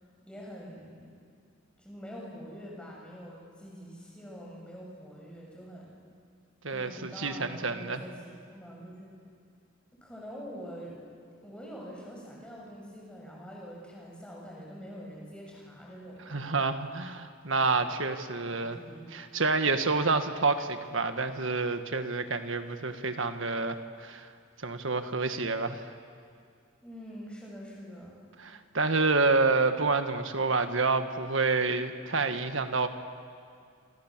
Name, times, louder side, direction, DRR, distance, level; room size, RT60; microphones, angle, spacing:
voice 1, 0.3-1.2 1.8-5.9 6.7-9.1 10.0-11.0 11.4-16.6 17.4-17.8 18.3-19.0 26.8-28.2, equal, 5° left, -3 dB, 6.5 m, -45 dB
voice 2, 6.6-8.0 16.3-18.8 19.1-24.3 24.6-25.9 28.4-32.9, right 3 dB, 70° right, 8 dB, 1.6 m, -28 dB
28.0 x 27.5 x 7.5 m, 2.3 s
head